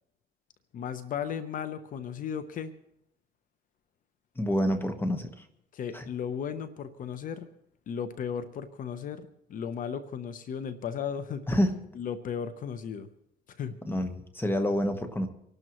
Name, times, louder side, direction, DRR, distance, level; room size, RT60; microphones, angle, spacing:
voice 1, 0.7-2.7 5.7-7.5 7.9-11.5 11.9-13.1 13.6-13.7, left 7 dB, 55° left, 11 dB, 0.9 m, -35 dB
voice 2, 4.4-5.3 5.9-6.0 11.5-11.8 13.9-15.3, equal, 10° left, 8 dB, 1.3 m, -27 dB
25.0 x 12.0 x 3.1 m, 0.75 s
cardioid pair, 110°, 17 cm